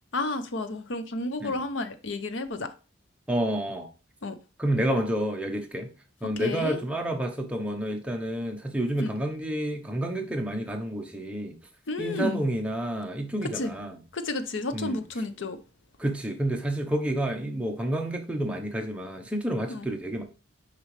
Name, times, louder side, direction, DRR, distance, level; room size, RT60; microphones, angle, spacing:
voice 1, 0.1-2.7 4.2-4.4 6.2-6.8 9.0-9.1 11.9-12.4 13.5-13.7 14.1-15.6 19.7-19.9, left 2 dB, 65° left, 0.7 m, -31 dB
voice 2, 3.3-3.9 4.6-5.9 6.2-11.6 12.0-14.0 14.7-15.0 16.0-20.2, right 1 dB, 5° right, 0.9 m, -29 dB
6.3 x 5.2 x 3.3 m
head